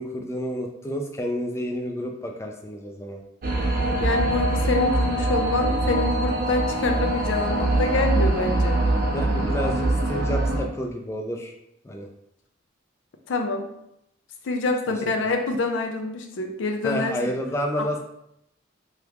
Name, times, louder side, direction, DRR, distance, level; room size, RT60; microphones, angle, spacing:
voice 1, 0.0-3.2 9.1-11.5 11.8-12.1 16.8-18.0, equal, 15° left, 2 dB, 0.3 m, -30 dB
sound 1, 3.4-10.6, right 1 dB, 45° right, 0.5 m, -23 dB
voice 2, 4.0-8.8 13.3-13.7 14.4-17.2 17.8-17.9, left 2 dB, 75° left, 4 dB, 0.4 m, -26 dB
2.9 x 2.4 x 3.4 m, 0.79 s
head